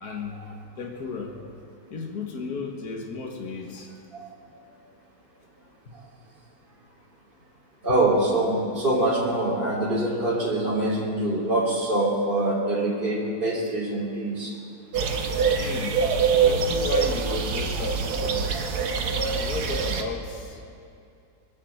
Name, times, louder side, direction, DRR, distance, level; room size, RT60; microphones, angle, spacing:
voice 1, 0.0-0.4 0.8-1.4 1.9-3.9 5.9-6.0 14.9-16.0 16.3-18.6 19.4-20.6, left 5 dB, 65° left, 1 dB, 1.9 m, -34 dB
voice 2, 7.8-14.5 18.5-18.7, right 1 dB, 30° right, -6 dB, 3.3 m, -24 dB
sound 1, 14.9-20.0, right 5 dB, 75° right, 1.5 m, -24 dB
21.5 x 7.2 x 7.8 m, 2.5 s
omnidirectional pair, 1.7 m